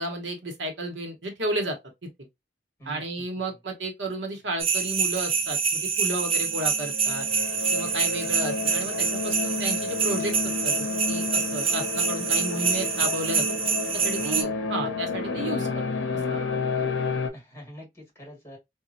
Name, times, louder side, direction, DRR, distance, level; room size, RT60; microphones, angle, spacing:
voice 1, 0.0-1.8 2.0-2.1 2.9-7.3 7.7-10.3 10.6-13.4 13.9-15.9 16.3-16.4, right 1 dB, 70° right, 1.0 m, -32 dB
voice 2, 2.8-3.6 14.2-14.7 17.3-18.6, equal, 15° left, 1.8 m, -44 dB
sound 1, 4.6-14.4, right 5 dB, 30° right, 0.5 m, -26 dB
sound 2, 6.1-17.3, left 4 dB, 75° left, 0.6 m, -31 dB
3.0 x 2.3 x 2.6 m
head